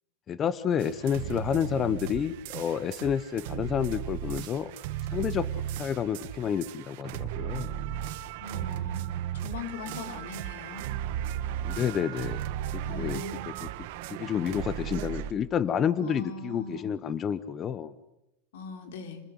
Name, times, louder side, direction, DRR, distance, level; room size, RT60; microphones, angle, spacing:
voice 1, 0.3-4.7 5.1-7.8 11.6-12.4 12.7-13.7 14.1-17.9, left 8 dB, 25° left, 16 dB, 1.0 m, -30 dB
sound 1, 0.8-15.3, right 11 dB, 60° right, 1.7 m, -35 dB
voice 2, 8.4-9.1 9.4-10.9 12.8-13.6 16.0-16.9 18.5-19.2, left 4 dB, 90° left, 7 dB, 4.7 m, -40 dB
28.5 x 21.0 x 9.9 m, 0.88 s
supercardioid pair, 155°, 0 cm